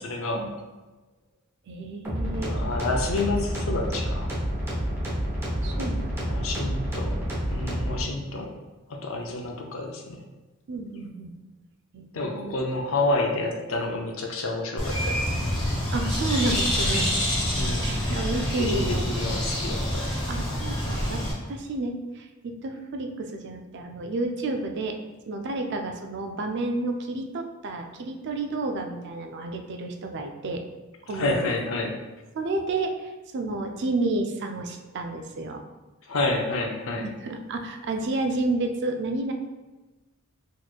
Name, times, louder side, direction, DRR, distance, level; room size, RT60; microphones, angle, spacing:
voice 1, 0.0-0.4 2.5-4.3 6.3-7.2 7.5-8.5 8.9-10.2 12.1-15.5 17.6-17.9 18.7-20.1 31.1-32.0 36.1-37.1, left 2 dB, 65° left, 2 dB, 0.5 m, -29 dB
voice 2, 1.7-2.6 5.6-6.4 10.7-11.3 11.9-12.6 15.9-17.1 17.8-19.0 20.0-25.0 25.3-30.6 31.0-31.7 32.3-35.6 37.0-39.3, right 2 dB, 50° right, 4 dB, 0.4 m, -31 dB
sound 1, 2.0-8.0, equal, 10° right, 0.8 m, -29 dB
Bird, 14.8-21.3, equal, 20° left, 1.0 m, -26 dB
4.2 x 3.0 x 2.3 m, 1.2 s
head